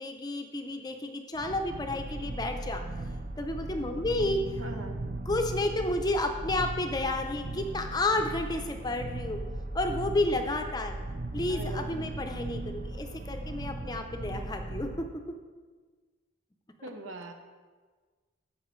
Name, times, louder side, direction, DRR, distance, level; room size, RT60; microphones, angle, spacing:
voice 1, 0.0-2.8 3.4-4.6 5.3-9.4 9.7-10.9 11.3-15.1, left 2 dB, 20° left, 5 dB, 0.5 m, -31 dB
sound 1, 1.3-15.0, right 2 dB, 40° right, 0.5 m, -37 dB
voice 2, 4.6-5.0 11.5-11.9 16.8-17.3, right 2 dB, 80° right, 5 dB, 1.0 m, -41 dB
14.5 x 5.5 x 3.1 m, 1.4 s
head